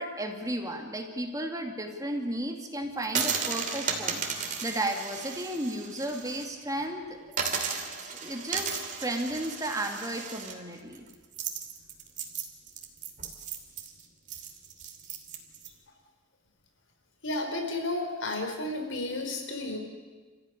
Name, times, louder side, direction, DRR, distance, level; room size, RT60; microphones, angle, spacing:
voice 1, 0.0-4.2 4.6-7.2 8.0-11.1, right 1 dB, 20° right, 4 dB, 2.3 m, -34 dB
sound 1, 3.0-6.5 6.8-6.9 7.3-15.7, right 6 dB, 40° right, 2.8 m, -35 dB
voice 2, 17.2-19.8, left 2 dB, 85° left, 3 dB, 4.8 m, -32 dB
28.5 x 15.0 x 9.9 m, 1.4 s
head